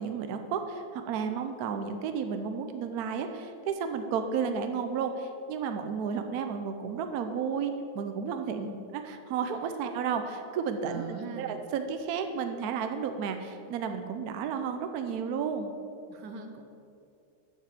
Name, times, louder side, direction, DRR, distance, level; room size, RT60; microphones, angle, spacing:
voice 1, 0.0-8.7 9.1-11.0 11.4-15.7, right 6 dB, 70° right, 7 dB, 1.1 m, -32 dB
voice 2, 8.5-8.8 10.8-11.6 16.1-16.6, right 5 dB, 90° right, 5 dB, 1.6 m, -41 dB
7.3 x 6.9 x 7.4 m, 2.6 s
omnidirectional pair, 1.8 m